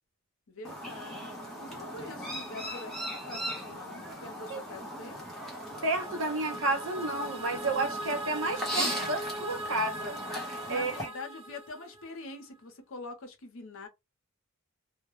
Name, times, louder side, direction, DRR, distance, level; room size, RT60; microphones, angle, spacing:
voice 1, 0.5-1.3 1.6-5.2 10.6-13.9, left 3 dB, 65° left, 0.7 m, -44 dB
Chirp tweet, 0.6-11.1, equal, ahead, 0.8 m, -38 dB
sound 1, 5.2-12.3, right 1 dB, 25° right, 0.5 m, -40 dB
voice 2, 5.8-10.2 10.5-11.1, right 2 dB, 65° right, 0.7 m, -31 dB
2.2 x 2.1 x 3.0 m
head